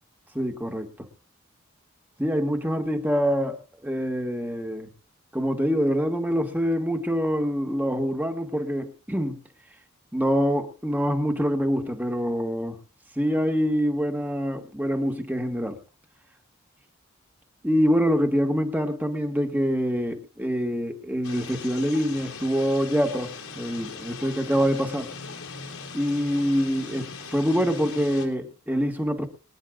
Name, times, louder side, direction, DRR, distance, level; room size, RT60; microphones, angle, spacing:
voice 1, 0.3-1.1 2.2-3.6 3.8-4.9 5.3-9.4 10.1-12.8 13.2-15.8 17.6-25.1 25.9-29.3, equal, 10° right, 4 dB, 1.9 m, -25 dB
sound 1, 21.2-28.3, left 4 dB, 80° left, 3.4 m, -40 dB
25.0 x 10.5 x 2.5 m, 0.32 s
head